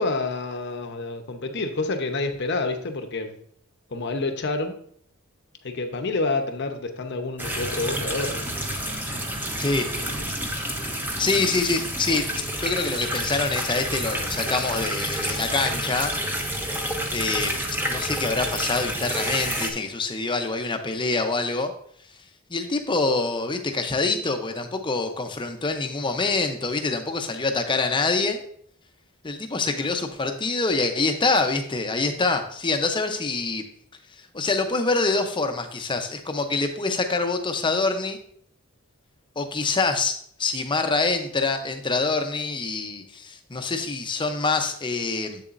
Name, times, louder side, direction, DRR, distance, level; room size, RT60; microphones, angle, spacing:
voice 1, 0.0-3.3 3.9-4.8 5.6-8.5 9.8-10.3, left 3 dB, 55° left, 6 dB, 0.8 m, -28 dB
sound 1, 7.4-19.7, equal, 10° right, 0.8 m, -29 dB
voice 2, 11.2-12.2 12.6-16.1 17.1-17.5 17.9-21.7 22.5-28.4 29.2-33.6 34.3-38.2 39.4-45.4, left 3 dB, 20° left, 6 dB, 0.7 m, -25 dB
7.7 x 7.0 x 2.6 m, 0.64 s
head